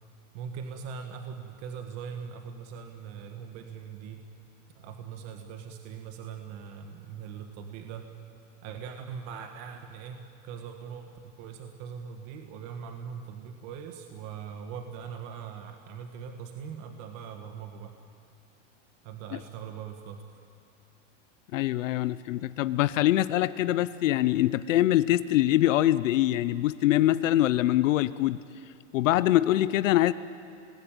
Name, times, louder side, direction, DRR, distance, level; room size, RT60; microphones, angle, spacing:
voice 1, 0.3-4.2 4.7-8.1 8.6-17.9 19.0-20.4, right 7 dB, 45° right, 5 dB, 1.6 m, -41 dB
voice 2, 21.5-28.4 28.9-30.1, left 14 dB, 85° left, 15 dB, 0.8 m, -24 dB
27.5 x 19.5 x 9.1 m, 2.5 s
supercardioid pair, 145°, 38 cm